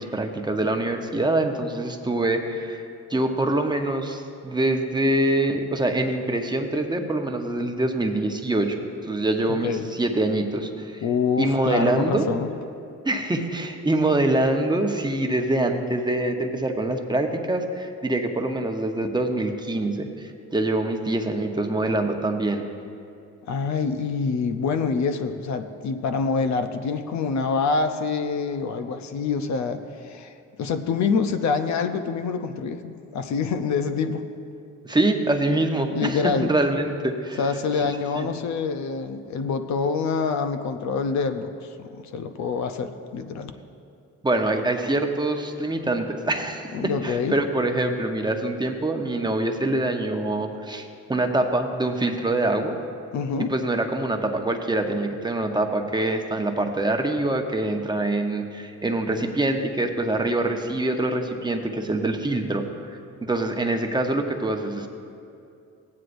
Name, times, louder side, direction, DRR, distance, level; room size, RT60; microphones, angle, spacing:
voice 1, 0.0-2.8 3.1-8.8 9.0-11.0 11.4-12.3 13.0-22.6 34.8-37.4 38.1-38.3 44.2-52.8 53.5-62.6 63.2-64.9, right 2 dB, 15° right, 4 dB, 0.8 m, -25 dB
voice 2, 11.0-12.5 23.5-30.3 30.6-34.2 35.9-36.5 37.4-43.5 46.7-47.3 53.1-53.5, left 5 dB, 65° left, 8 dB, 0.7 m, -26 dB
16.0 x 9.6 x 2.6 m, 2.5 s
cardioid pair, 90°, 30 cm